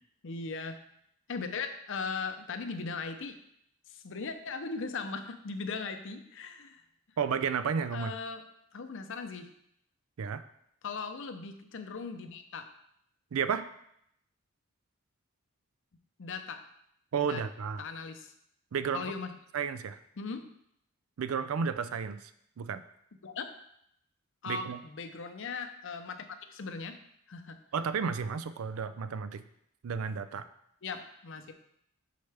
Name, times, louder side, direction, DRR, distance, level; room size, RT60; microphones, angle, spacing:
voice 1, 0.2-0.8 1.3-3.4 3.9-6.8 7.9-8.4 8.7-9.5 10.8-12.7 16.2-16.6 17.2-17.4 17.8-18.3 18.9-19.3 20.2-20.5 23.2-23.5 24.4-27.0 27.3-27.6 30.8-31.5, left 4 dB, 65° left, 8 dB, 0.6 m, -38 dB
voice 2, 7.2-8.1 10.2-10.4 13.3-13.7 17.1-17.8 18.7-19.1 19.5-20.0 21.2-22.3 22.6-22.8 24.5-24.8 27.7-29.4 29.8-30.5, right 6 dB, 85° right, 12 dB, 0.4 m, -32 dB
6.6 x 5.6 x 3.4 m, 0.74 s
head